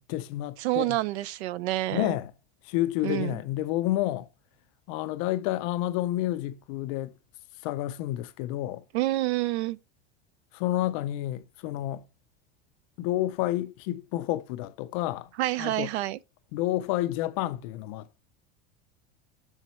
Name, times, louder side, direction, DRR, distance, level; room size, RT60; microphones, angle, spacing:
voice 1, 0.0-1.0 1.9-2.3 2.6-4.3 4.9-7.2 7.6-8.8 10.5-12.0 13.0-15.3 15.6-15.9 16.5-18.2, left 15 dB, 35° left, 0.4 m, -30 dB
voice 2, 0.6-2.2 3.0-3.4 8.9-9.8 15.4-16.2, right 17 dB, 80° right, 0.6 m, -28 dB
7.3 x 6.5 x 3.1 m
supercardioid pair, 180°, 32 cm